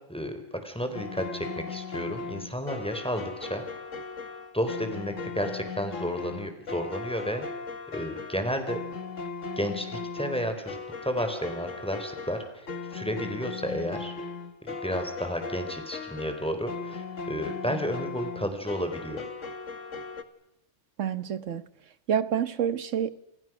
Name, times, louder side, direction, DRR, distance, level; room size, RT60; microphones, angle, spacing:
voice 1, 0.1-3.6 4.5-7.4 7.9-8.8 9.6-14.2 14.6-19.2, equal, 5° left, 6 dB, 4.2 m, -32 dB
sound 1, 0.9-20.2, left 4 dB, 90° left, 2.0 m, -38 dB
voice 2, 21.0-21.6 22.1-23.1, right 8 dB, 80° right, 14 dB, 1.5 m, -27 dB
29.0 x 28.0 x 6.3 m, 0.90 s
omnidirectional pair, 1.3 m